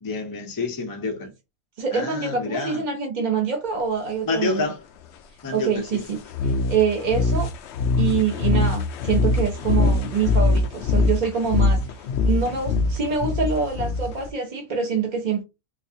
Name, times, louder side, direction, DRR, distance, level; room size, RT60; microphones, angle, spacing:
voice 1, 0.0-1.3 1.9-2.8 4.3-4.8 5.4-6.0, left 3 dB, 30° left, 0.4 m, -28 dB
voice 2, 1.8-4.7 5.5-6.2 6.7-7.5 8.0-15.4, right 6 dB, 50° right, 0.6 m, -25 dB
sound 1, 6.3-14.3, left 3 dB, 65° left, 0.7 m, -22 dB
4.0 x 2.4 x 2.7 m
omnidirectional pair, 1.5 m